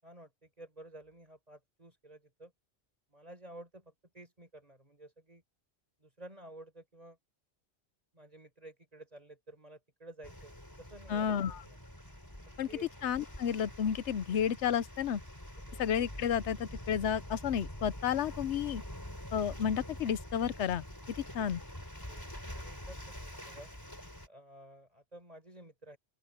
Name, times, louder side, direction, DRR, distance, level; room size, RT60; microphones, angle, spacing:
voice 1, 0.0-2.5 3.1-5.4 6.0-7.2 8.1-11.8 12.4-12.9 15.7-15.9 22.1-23.7 24.3-26.0, right 1 dB, 35° right, 5.4 m, -53 dB
sound 1, 10.2-24.3, left 1 dB, 20° left, 3.7 m, -46 dB
voice 2, 11.1-11.6 12.6-12.7 13.0-15.2 15.8-18.8 19.3-20.8 21.2-21.6, left 8 dB, 90° left, 1.0 m, -31 dB
open air
omnidirectional pair, 1.1 m